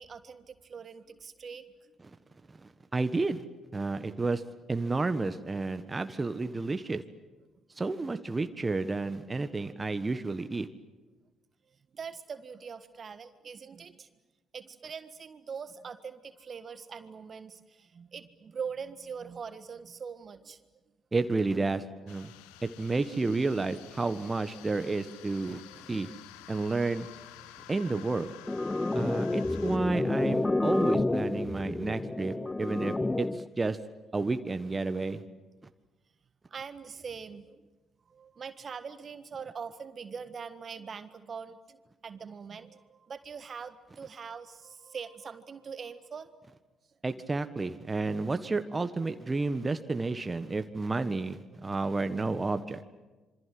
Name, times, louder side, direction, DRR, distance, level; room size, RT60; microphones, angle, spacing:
voice 1, 0.0-1.9 11.9-14.1 14.5-20.6 25.7-26.2 36.5-37.6 38.1-46.3, right 6 dB, 45° right, 12 dB, 1.7 m, -43 dB
voice 2, 2.5-3.4 3.7-4.4 4.7-7.0 7.8-10.7 21.1-22.3 22.6-25.6 25.9-26.1 26.5-27.1 27.7-28.3 28.9-33.8 34.1-35.2 47.0-52.8, right 3 dB, 25° right, 10 dB, 1.5 m, -31 dB
sound 1, 22.1-29.8, left 14 dB, 75° left, 1.2 m, -51 dB
sound 2, 28.5-33.5, left 2 dB, 20° left, 0.8 m, -29 dB
27.0 x 25.0 x 7.8 m, 1.2 s
figure-of-eight pair, 45°, 0 cm